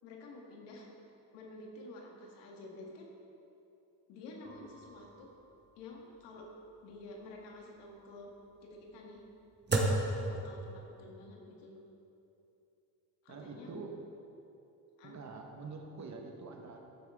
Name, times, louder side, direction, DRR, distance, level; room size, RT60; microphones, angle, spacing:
voice 1, 0.0-0.9 1.3-3.1 4.1-5.3 5.8-6.5 6.8-8.3 8.6-9.2 9.7-11.8 13.2-13.9 15.0-15.2, left 2 dB, 85° left, 0 dB, 1.8 m, -50 dB
sound 1, 4.4-11.1, right 2 dB, 25° right, 1.6 m, -37 dB
voice 2, 13.3-14.0 15.0-16.8, right 4 dB, 40° right, 2 dB, 1.5 m, -45 dB
14.0 x 7.4 x 3.7 m, 2.8 s
supercardioid pair, 80°, 42 cm